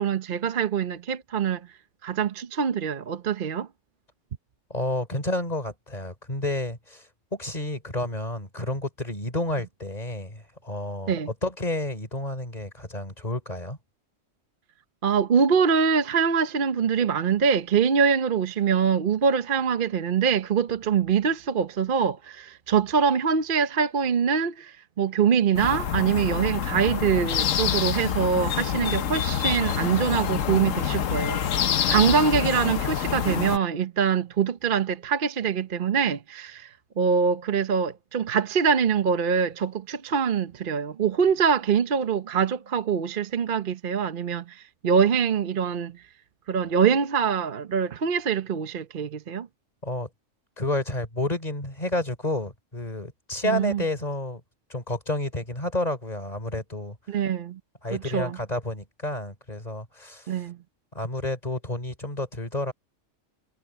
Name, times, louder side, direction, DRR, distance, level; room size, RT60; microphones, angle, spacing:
voice 1, 0.0-1.7 2.0-3.7 11.1-11.3 15.0-46.0 46.5-49.5 53.4-53.8 57.1-57.6 57.9-58.4 60.3-60.6, right 6 dB, 45° right, 0.9 m, -24 dB
voice 2, 4.7-7.0 7.3-11.2 11.4-13.8 49.8-50.1 50.6-54.4 54.7-57.0 57.8-60.4 60.9-62.7, left 1 dB, 30° left, 3.5 m, -30 dB
sound 1, 25.5-33.6, left 9 dB, 75° left, 1.3 m, -26 dB
omnidirectional pair, 1.3 m